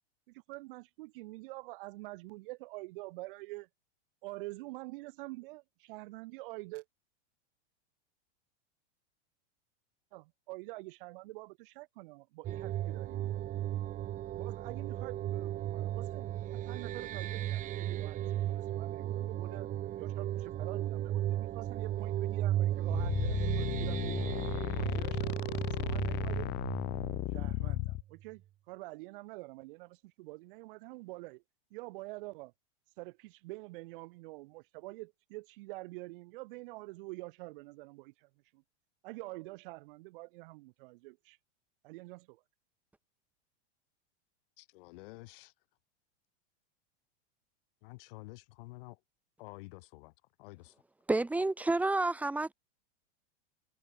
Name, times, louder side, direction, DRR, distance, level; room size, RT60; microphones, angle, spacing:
voice 1, 0.3-3.7 4.2-6.8 10.1-13.4 14.3-19.7 19.9-24.3 24.6-26.5 27.3-31.4 31.7-32.5 33.0-38.6 39.0-41.4 41.8-42.4, right 23 dB, 50° right, 1.8 m, -47 dB
sound 1, 12.4-27.9, right 13 dB, 25° right, 1.4 m, -35 dB
sound 2, 22.9-28.0, left 23 dB, 30° left, 0.8 m, -35 dB
voice 2, 44.6-45.5 47.8-48.9 49.4-50.1 50.4-50.7, left 23 dB, 50° left, 4.3 m, -50 dB
voice 3, 51.1-52.5, right 2 dB, 5° right, 1.9 m, -29 dB
supercardioid pair, 155°, 34 cm